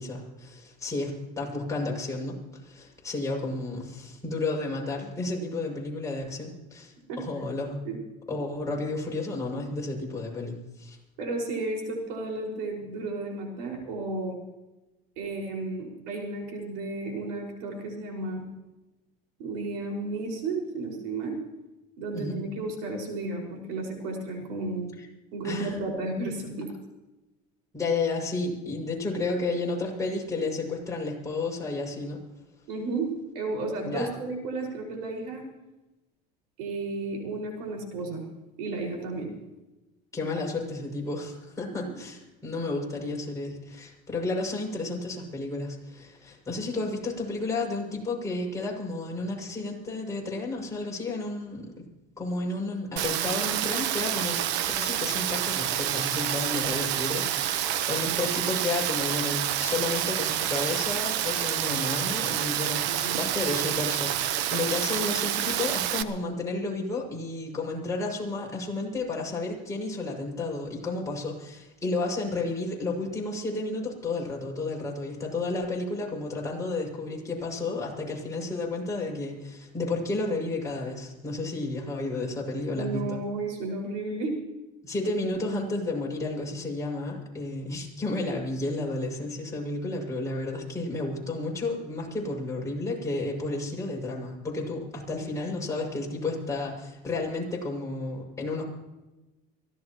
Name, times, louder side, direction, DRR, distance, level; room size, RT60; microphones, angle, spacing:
voice 1, 0.0-7.8 8.3-11.0 22.1-22.4 25.0-25.1 25.4-25.8 26.1-26.3 27.7-32.2 33.8-34.1 40.1-51.7 52.2-54.4 54.7-83.2 84.8-98.6, left 2 dB, 15° left, -2 dB, 6.9 m, -32 dB
voice 2, 11.2-14.4 15.2-18.5 19.4-21.4 22.0-24.9 25.3-26.7 32.7-35.4 36.6-38.2 38.6-39.3 62.9-63.2 82.8-84.3, right 2 dB, 90° right, 0 dB, 5.7 m, -33 dB
Rain, 53.0-66.0, right 11 dB, 65° right, 1.1 m, -28 dB
24.0 x 17.0 x 3.1 m, 1.0 s
cardioid pair, 120°, 20 cm